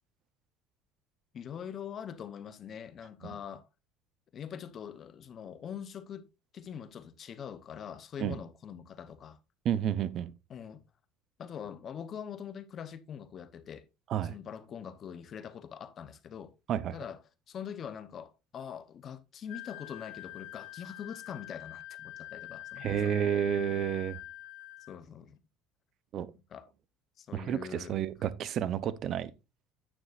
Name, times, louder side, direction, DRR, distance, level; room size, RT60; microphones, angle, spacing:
voice 1, 1.3-3.7 4.3-6.3 6.5-9.4 10.5-10.8 11.4-13.9 14.2-16.6 16.9-17.2 17.5-23.2 24.9-25.4 26.5-26.7 27.2-28.0, left 8 dB, 35° left, 0.7 m, -43 dB
voice 2, 9.6-10.3 14.1-14.3 16.7-16.9 22.8-24.2 26.1-26.3 27.3-29.3, right 9 dB, 40° right, 0.7 m, -30 dB
Wind instrument woodwind instrument, 19.5-24.9, left 16 dB, 80° left, 0.6 m, -45 dB
9.7 x 9.2 x 2.5 m
cardioid pair, 150°, 0 cm